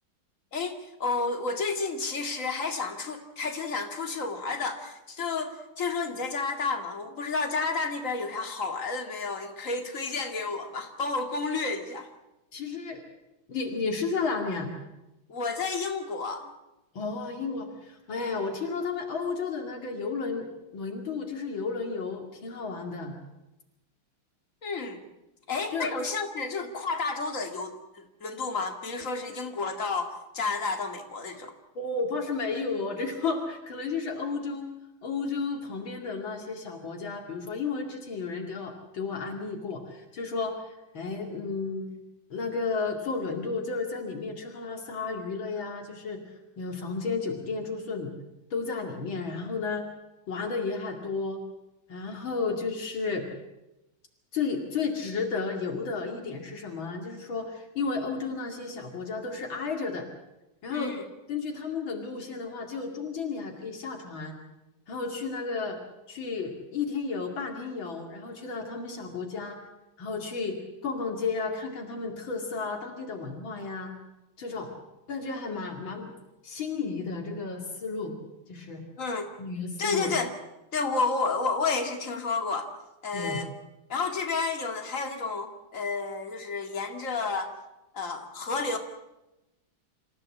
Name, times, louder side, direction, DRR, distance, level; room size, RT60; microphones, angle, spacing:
voice 1, 0.5-12.1 15.3-16.5 24.6-25.0 25.5-31.5 60.7-61.1 79.0-79.3 79.8-80.3 80.7-82.7 83.0-83.5 83.9-87.5 87.9-88.8, left 4 dB, 40° left, 5 dB, 2.5 m, -31 dB
voice 2, 12.5-13.0 13.5-14.7 16.9-20.5 20.7-23.2 25.7-25.9 31.7-34.7 35.0-41.9 42.3-48.1 48.5-49.9 50.3-51.4 51.9-53.3 54.3-60.1 60.6-61.0 61.3-64.4 64.9-65.8 66.1-69.6 70.0-73.9 74.4-74.7 75.1-76.1 76.4-78.2 78.5-78.8 79.4-80.1 83.1-83.4, left 4 dB, 80° left, 2 dB, 3.2 m, -33 dB
26.5 x 15.5 x 8.6 m, 0.96 s
omnidirectional pair, 2.1 m